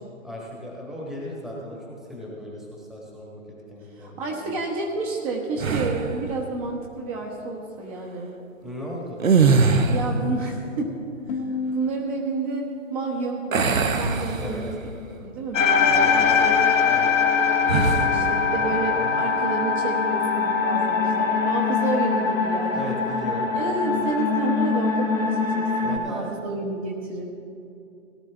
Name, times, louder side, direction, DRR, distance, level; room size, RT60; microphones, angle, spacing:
voice 1, 0.2-1.8 2.1-4.5 5.9-6.1 8.6-9.3 14.4-14.6 15.9-17.2 18.0-19.2 22.7-23.5 25.8-26.3, left 1 dB, ahead, -4 dB, 1.3 m, -37 dB
voice 2, 4.0-8.3 9.9-10.9 11.3-11.4 11.7-15.0 15.2-16.8 17.3-22.9 23.5-27.3, right 3 dB, 25° right, -1 dB, 1.2 m, -30 dB
sound 1, 5.6-6.2 9.1-10.2 13.5-14.9 15.4-15.6 17.6-18.1, right 4 dB, 80° right, 1.1 m, -21 dB
sound 2, 11.3-14.3, left 2 dB, 40° left, 1.4 m, -33 dB
sound 3, 15.5-26.0, left 5 dB, 65° left, 1.5 m, -22 dB
18.0 x 11.5 x 3.4 m, 2.6 s
hypercardioid pair, 140°, 40 cm